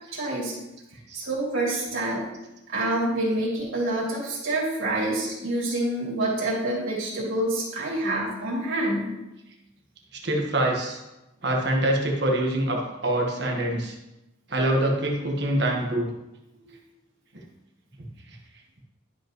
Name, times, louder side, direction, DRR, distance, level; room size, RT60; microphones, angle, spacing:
voice 1, 0.1-0.5 1.1-2.3 2.7-9.1 16.6-16.8, right 1 dB, 85° right, -6 dB, 3.0 m, -27 dB
voice 2, 10.2-11.0 11.4-13.9 14.5-16.1 18.3-18.4, right 1 dB, 55° right, 0 dB, 1.4 m, -25 dB
11.5 x 5.3 x 3.0 m, 0.95 s
head